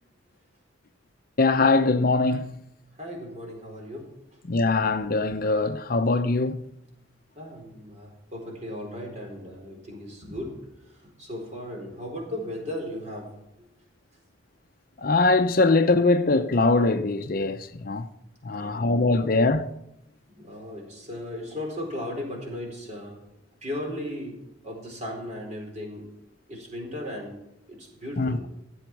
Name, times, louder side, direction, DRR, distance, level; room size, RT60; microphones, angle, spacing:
voice 1, 1.4-2.5 4.4-6.6 15.0-18.1 18.4-19.7 28.2-28.4, left 3 dB, 50° left, 0.6 m, -22 dB
voice 2, 3.0-4.4 7.3-13.7 18.6-18.9 19.2-19.3 20.4-23.2 23.6-24.4 24.6-26.1 26.5-27.4 27.7-28.5, left 1 dB, 35° right, 4.3 m, -36 dB
15.0 x 8.0 x 6.1 m
head